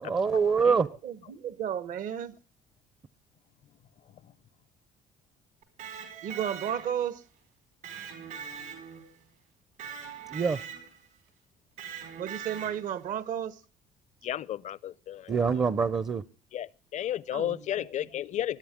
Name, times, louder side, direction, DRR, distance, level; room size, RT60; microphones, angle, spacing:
voice 1, 0.0-0.9 10.3-10.6 15.3-16.2, right 5 dB, 25° right, 0.5 m, -25 dB
voice 2, 0.7-2.4 6.2-7.2 12.2-13.6 17.3-17.6, right 9 dB, 65° right, 1.0 m, -33 dB
Electric guitar, 5.6-7.1 7.8-9.2 9.8-11.1 11.8-13.0, right 8 dB, 80° right, 5.1 m, -42 dB
voice 3, 14.2-15.6 16.5-18.6, left 11 dB, 50° left, 0.5 m, -34 dB
20.5 x 10.5 x 3.6 m
cardioid pair, 100°, 15 cm